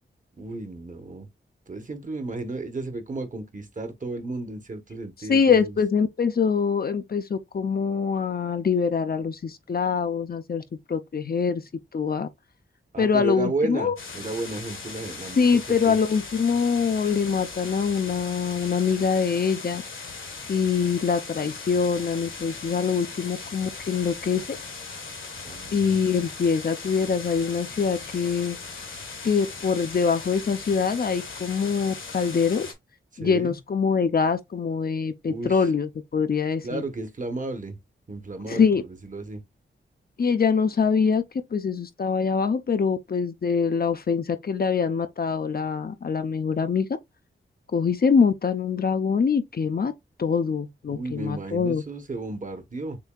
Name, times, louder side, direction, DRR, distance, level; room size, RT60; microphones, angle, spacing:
voice 1, 0.4-1.3 1.7-5.8 12.9-16.0 25.4-26.0 33.1-33.6 35.3-35.7 36.6-37.8 38.1-39.4 50.9-53.0, right 2 dB, 40° right, 1.0 m, -33 dB
voice 2, 5.3-10.6 10.9-11.6 11.9-12.3 13.0-13.9 15.4-19.8 20.5-24.6 25.7-28.6 29.2-32.7 33.2-36.8 38.5-38.8 40.2-41.2 41.5-46.9 47.7-49.9 50.2-51.8, left 6 dB, 50° left, 0.5 m, -24 dB
sound 1, 14.0-32.7, left 4 dB, 70° left, 1.4 m, -39 dB
6.8 x 2.7 x 2.3 m
wide cardioid pair, 85°, 21 cm